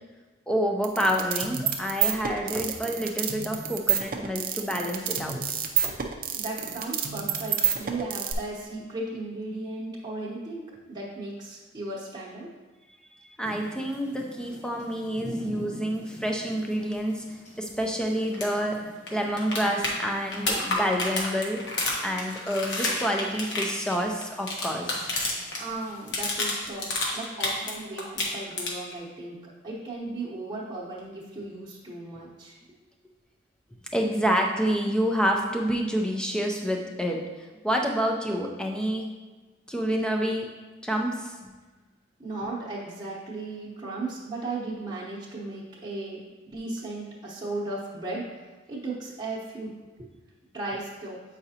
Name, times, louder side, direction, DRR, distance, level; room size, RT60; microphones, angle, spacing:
voice 1, 0.5-5.4 5.8-5.9 13.4-21.6 22.0-25.1 33.9-37.2 37.6-39.2 39.7-40.5 40.8-41.5, equal, 5° left, 1 dB, 0.5 m, -28 dB
sound 1, 0.8-8.3, right 9 dB, 45° right, 0.5 m, -28 dB
voice 2, 6.3-12.5 25.6-29.4 29.6-32.6 42.2-46.2 46.5-48.3 48.7-49.7 50.0-50.1 50.5-51.2, right 2 dB, 20° right, -7 dB, 0.9 m, -36 dB
sound 2, 13.4-26.2, equal, 40° left, 1.1 m, -46 dB
sound 3, 18.3-18.5 18.7-18.8 19.1-25.6 25.9-27.7 28.0-28.9 31.0-31.1, left 2 dB, 65° left, 1.1 m, -29 dB
7.8 x 4.9 x 2.8 m, 1.3 s
head